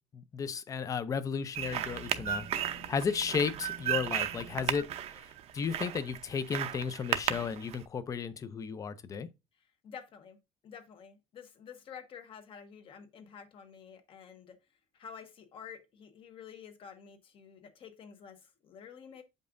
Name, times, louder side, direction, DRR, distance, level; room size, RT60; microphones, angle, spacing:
voice 1, 0.1-2.5 2.9-4.9 5.5-9.3, left 6 dB, 25° left, 0.5 m, -34 dB
sound 1, 1.5-7.8, right 10 dB, 50° right, 0.6 m, -34 dB
voice 2, 9.8-10.4 10.6-14.6 14.9-19.2, left 7 dB, 40° left, 1.1 m, -50 dB
7.9 x 5.3 x 2.6 m
cardioid pair, 165°, 13 cm